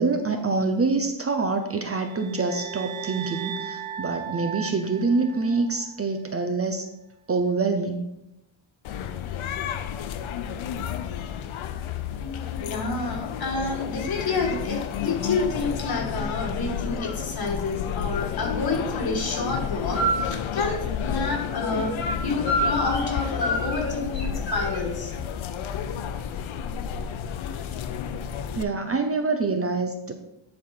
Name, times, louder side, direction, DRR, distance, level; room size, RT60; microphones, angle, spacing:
voice 1, 0.0-6.9 7.3-8.1 12.2-12.3 28.5-30.1, right 3 dB, 30° right, 6 dB, 0.6 m, -26 dB
sound 1, 1.7-6.0, right 8 dB, 80° right, 0.7 m, -37 dB
sound 2, 8.8-28.6, left 8 dB, 85° left, 0.7 m, -31 dB
voice 2, 12.6-21.9 22.2-25.1, left 3 dB, 50° left, 0 dB, 1.9 m, -29 dB
sound 3, 19.9-20.3 21.6-22.1 22.4-23.2 23.4-24.9, right 1 dB, 20° left, 2.8 m, -27 dB
10.0 x 4.3 x 4.4 m, 0.87 s
wide cardioid pair, 150°, 47 cm